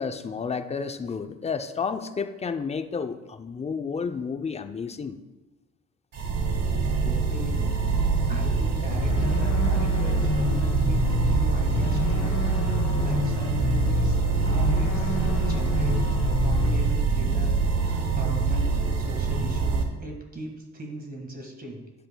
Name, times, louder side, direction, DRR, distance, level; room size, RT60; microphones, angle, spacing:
voice 1, 0.0-5.2, left 5 dB, 20° left, 9 dB, 0.5 m, -31 dB
sound 1, 6.1-19.8, right 4 dB, 60° right, 1.2 m, -24 dB
voice 2, 7.0-7.7 8.0-21.8, right 1 dB, 30° right, 1 dB, 1.7 m, -39 dB
sound 2, 8.9-16.9, left 5 dB, 85° left, 1.0 m, -29 dB
10.5 x 7.4 x 2.2 m, 1.2 s
cardioid pair, 90°, 30 cm